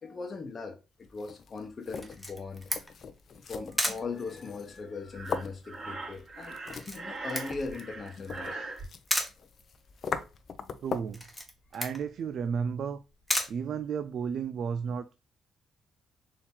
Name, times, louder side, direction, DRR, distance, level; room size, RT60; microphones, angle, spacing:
voice 1, 0.0-3.0 3.4-8.6, left 4 dB, 40° left, 0.9 m, -39 dB
sound 1, 1.0-11.2, left 6 dB, 55° left, 0.6 m, -41 dB
Camera, 2.0-14.4, equal, ahead, 1.2 m, -37 dB
Breathing, 5.1-8.9, right 3 dB, 35° right, 2.3 m, -41 dB
voice 2, 10.8-11.2 11.7-13.0 13.5-15.1, right 6 dB, 60° right, 0.3 m, -33 dB
4.3 x 2.8 x 3.6 m
cardioid pair, 90°, 0 cm